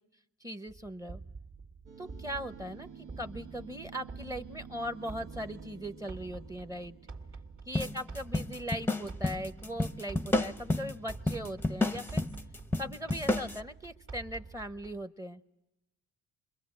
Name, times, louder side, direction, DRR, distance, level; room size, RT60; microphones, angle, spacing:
voice 1, 0.4-1.2 2.0-7.0 7.7-12.2 12.8-15.4, equal, 10° right, 10 dB, 1.0 m, -39 dB
sound 1, 0.7-15.0, right 4 dB, 45° right, 2.3 m, -48 dB
sound 2, 1.9-8.5, right 6 dB, 80° right, 1.4 m, -51 dB
sound 3, 7.7-13.6, left 2 dB, 5° left, 0.8 m, -31 dB
27.5 x 22.5 x 7.8 m, 0.92 s
cardioid pair, 90°, 30 cm